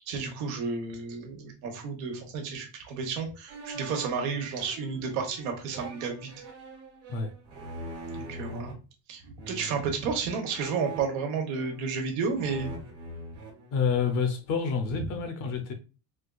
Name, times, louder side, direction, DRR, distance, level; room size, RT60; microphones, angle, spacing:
voice 1, 0.1-6.3 8.3-8.7 9.1-12.7, right 5 dB, 65° right, 1.1 m, -32 dB
sound 1, 3.5-8.7 9.4-9.9 10.5-12.0 12.3-14.3, right 1 dB, 35° right, 1.4 m, -43 dB
voice 2, 13.7-15.7, left 6 dB, 45° left, 0.6 m, -28 dB
4.4 x 2.4 x 2.2 m
cardioid pair, 180°, 42 cm